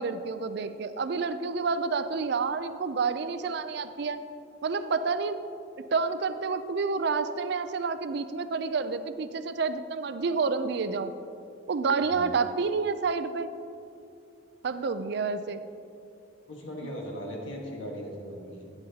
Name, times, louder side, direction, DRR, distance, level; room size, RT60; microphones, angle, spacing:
voice 1, 0.0-4.2 4.6-5.4 5.9-11.1 11.7-13.5 14.6-15.6 16.8-16.9, right 4 dB, 55° right, 11 dB, 0.4 m, -29 dB
voice 2, 16.5-18.7, equal, 80° left, -1 dB, 1.5 m, -38 dB
12.0 x 8.0 x 2.8 m, 2.6 s
head